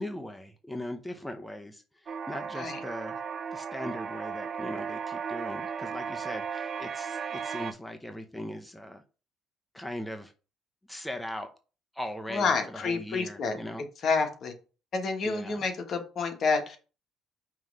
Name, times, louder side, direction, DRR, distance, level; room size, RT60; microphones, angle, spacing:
voice 1, 0.0-3.2 3.5-9.0 9.7-10.3 10.9-11.5 11.9-13.9 15.2-15.6, left 1 dB, 5° left, 0.7 m, -39 dB
sound 1, 2.1-7.7, right 6 dB, 50° right, 0.5 m, -35 dB
voice 2, 12.3-13.6 14.0-14.5 14.9-16.8, left 4 dB, 55° left, 1.4 m, -28 dB
5.7 x 3.1 x 5.4 m
cardioid pair, 95°, 0 cm